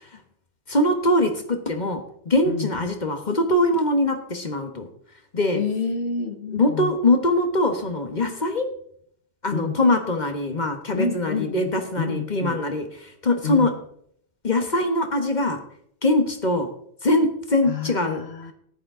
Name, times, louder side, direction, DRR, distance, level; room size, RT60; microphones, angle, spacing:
voice 1, 0.7-4.9 5.3-5.6 6.5-8.7 9.4-13.7 14.4-15.6 16.0-16.7 17.0-18.2, left 1 dB, 40° left, 1.4 m, -22 dB
voice 2, 5.5-6.9 9.5-9.8 10.9-12.6 13.4-13.7 17.7-18.5, left 5 dB, 70° left, 1.4 m, -29 dB
14.0 x 11.0 x 3.7 m
omnidirectional pair, 1.1 m